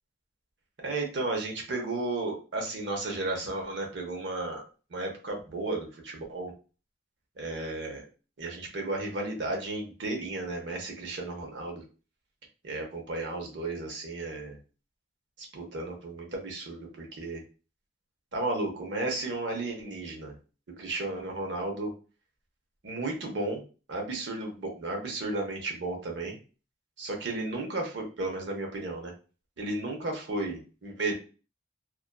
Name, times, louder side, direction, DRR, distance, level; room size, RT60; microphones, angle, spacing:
voice 1, 0.8-4.6 4.9-6.5 7.4-8.0 8.4-11.8 12.6-14.6 15.5-17.4 18.3-20.3 20.8-21.9 22.8-23.6 23.9-26.4 27.0-29.1 29.6-31.1, right 2 dB, 70° right, 1 dB, 0.7 m, -33 dB
2.5 x 2.3 x 2.2 m, 0.35 s
head